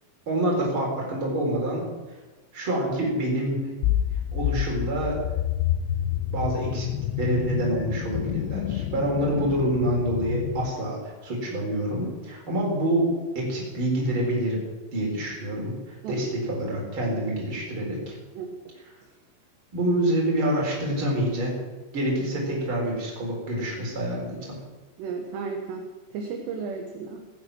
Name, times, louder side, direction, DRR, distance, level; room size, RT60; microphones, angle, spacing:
voice 1, 0.3-1.9 2.5-3.7 4.3-5.2 6.3-6.9 7.2-14.6 14.9-18.2 19.7-21.6 21.9-24.6, right 1 dB, 25° right, -2 dB, 4.4 m, -27 dB
sound 1, 3.8-10.7, left 11 dB, 85° left, 3.3 m, -28 dB
voice 2, 18.4-18.7 19.0-19.1 25.0-27.2, right 5 dB, 70° right, 3 dB, 3.1 m, -34 dB
18.0 x 9.5 x 6.3 m, 1.2 s
omnidirectional pair, 5.7 m